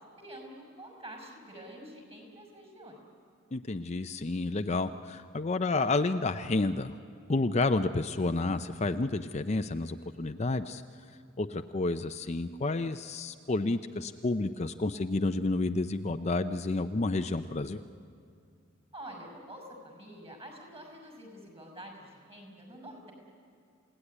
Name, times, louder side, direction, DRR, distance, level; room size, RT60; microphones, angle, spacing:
voice 1, 0.2-3.0 18.9-23.1, right 1 dB, 30° right, 3 dB, 6.0 m, -47 dB
voice 2, 3.5-7.0 7.3-10.8 11.4-17.8, left 2 dB, 35° left, 8 dB, 0.6 m, -30 dB
29.0 x 17.5 x 9.9 m, 2.3 s
head